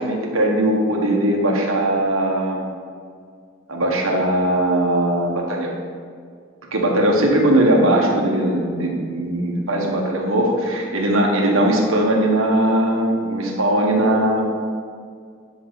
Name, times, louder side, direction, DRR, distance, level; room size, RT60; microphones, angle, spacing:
voice 1, 0.0-2.7 3.7-5.7 6.7-14.4, right 1 dB, 75° right, 0 dB, 1.5 m, -19 dB
10.5 x 6.3 x 4.1 m, 2.1 s
head